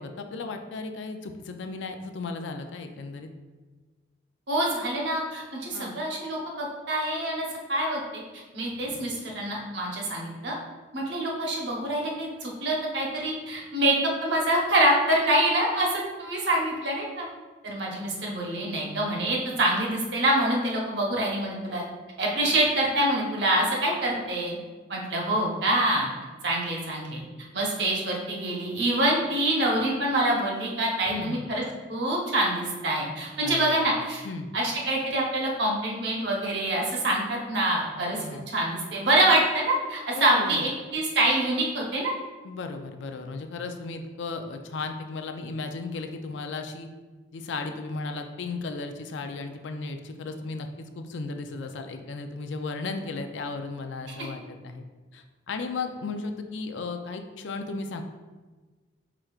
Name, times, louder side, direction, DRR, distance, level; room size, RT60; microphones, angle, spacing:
voice 1, 0.0-3.3 5.7-6.0 8.8-9.0 31.1-31.4 33.4-34.0 34.2-34.5 38.1-38.4 40.1-40.7 42.4-46.9 47.3-50.7 51.0-54.8 55.1-58.0, left 3 dB, 70° left, 6 dB, 0.4 m, -35 dB
voice 2, 4.5-8.2 8.5-10.6 10.9-13.9 14.2-17.3 17.6-21.8 22.2-24.6 24.9-26.1 26.4-27.2 27.5-31.6 31.9-34.2 34.5-38.2 38.5-42.1 54.1-54.3, right 1 dB, 60° right, -2 dB, 1.0 m, -26 dB
5.0 x 4.4 x 2.4 m, 1.3 s
head